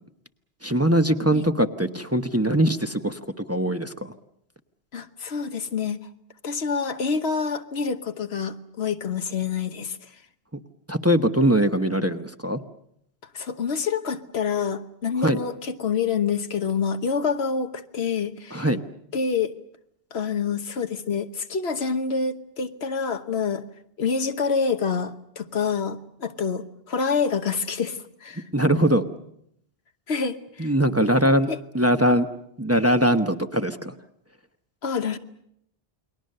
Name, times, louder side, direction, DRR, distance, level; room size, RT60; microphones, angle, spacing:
voice 1, 0.6-3.2 3.5-4.1 10.9-12.6 15.2-15.4 18.5-18.8 28.5-29.0 30.6-31.5 31.7-32.3 32.6-33.9, right 1 dB, 15° right, 7 dB, 0.9 m, -21 dB
voice 2, 4.9-6.0 6.4-10.0 13.3-18.7 19.1-19.5 20.1-23.6 24.0-28.4 30.1-30.7 31.0-31.1 31.5-31.6 34.8-35.2, left 5 dB, 80° left, 9 dB, 1.4 m, -27 dB
29.5 x 21.5 x 6.7 m, 0.74 s
omnidirectional pair, 1.1 m